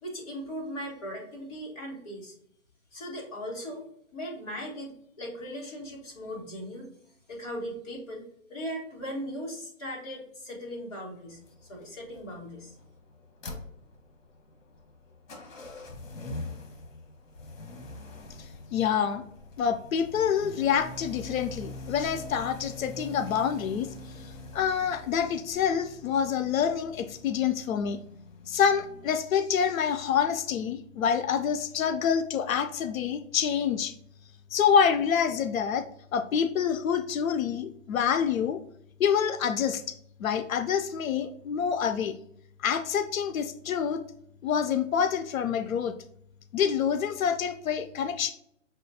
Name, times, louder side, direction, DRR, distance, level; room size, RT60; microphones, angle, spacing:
voice 1, 0.0-2.3 2.9-3.8 4.1-6.9 7.3-8.2 8.5-12.7, equal, 30° left, -4 dB, 1.4 m, -38 dB
sound 1, 11.3-29.2, left 2 dB, 70° left, 1.2 m, -44 dB
voice 2, 18.4-19.2 19.6-24.2 24.5-28.0 28.5-33.9 34.5-38.6 39.0-42.2 42.6-44.0 44.4-45.9 46.5-48.3, left 7 dB, 90° left, 9 dB, 0.5 m, -27 dB
6.1 x 2.3 x 2.7 m, 0.70 s
hypercardioid pair, 165°, 40 cm